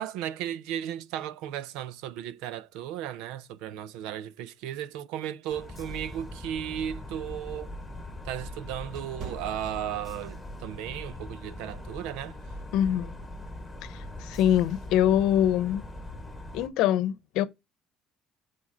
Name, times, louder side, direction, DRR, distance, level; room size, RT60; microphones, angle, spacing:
voice 1, 0.0-7.7 8.2-12.4, right 11 dB, 90° right, 0.6 m, -35 dB
sound 1, 5.5-16.7, left 1 dB, ahead, 1.8 m, -41 dB
sound 2, 7.8-10.4 10.8-11.1 11.7-11.9, right 5 dB, 50° right, 1.3 m, -47 dB
voice 2, 12.7-13.2 13.9-15.8 16.5-17.5, left 10 dB, 70° left, 0.8 m, -24 dB
7.3 x 4.8 x 7.1 m
cardioid pair, 165°, 0 cm